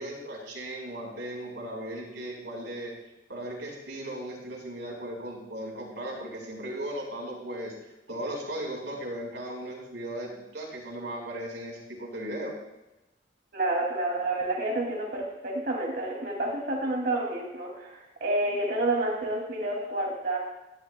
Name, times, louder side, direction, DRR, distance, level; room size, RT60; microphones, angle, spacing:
voice 1, 0.0-2.9 3.3-7.7 8.1-12.6, right 1 dB, 90° right, -1 dB, 4.8 m, -37 dB
voice 2, 13.5-20.4, right 2 dB, 60° right, -3 dB, 2.6 m, -29 dB
17.5 x 14.5 x 2.3 m, 0.97 s
head